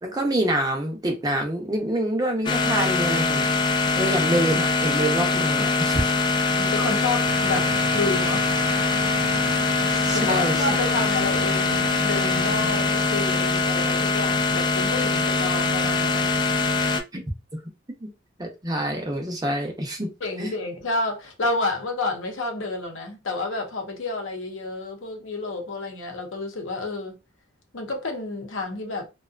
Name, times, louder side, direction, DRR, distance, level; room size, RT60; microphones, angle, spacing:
voice 1, 0.0-3.5 4.0-6.1 6.5-6.7 9.9-10.6 17.1-17.3 17.5-17.6 18.0-18.1 18.4-20.1 20.4-20.5, right 1 dB, 20° right, 0.6 m, -26 dB
sound 1, 2.5-17.0, left 3 dB, 25° left, 0.3 m, -23 dB
voice 2, 6.6-8.8 9.7-16.3 20.2-27.2 27.7-29.1, left 2 dB, 80° left, 0.8 m, -30 dB
sound 2, 7.2-13.5, right 5 dB, 85° right, 0.4 m, -35 dB
2.6 x 2.2 x 2.4 m
head